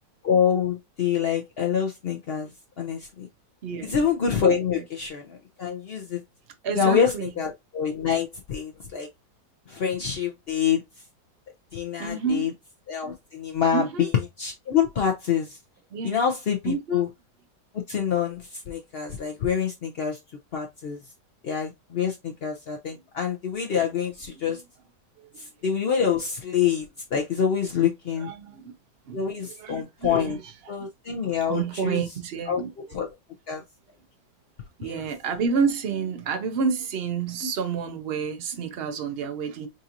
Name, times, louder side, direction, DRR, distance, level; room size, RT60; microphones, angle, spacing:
voice 1, 0.2-2.5 2.8-3.3 3.8-6.2 6.8-9.1 9.7-10.8 11.7-12.5 12.9-14.1 14.4-15.6 16.0-17.1 17.7-20.2 20.5-21.0 21.4-24.6 25.4-28.3 29.1-30.4 30.7-32.0 32.5-32.6 32.9-33.1 33.5-33.6 34.8-35.1 37.4-37.5, left 7 dB, 85° left, 0.5 m, -26 dB
voice 2, 3.6-4.0 4.7-4.8 6.6-7.3 12.0-12.5 13.7-14.1 15.9-16.2 16.6-17.1 24.4-24.6 25.2-25.5 28.2-28.8 29.1-29.2 29.6-30.8 31.2-32.7 34.8-39.7, right 5 dB, 75° right, 0.5 m, -29 dB
5.2 x 2.5 x 2.8 m
omnidirectional pair, 1.9 m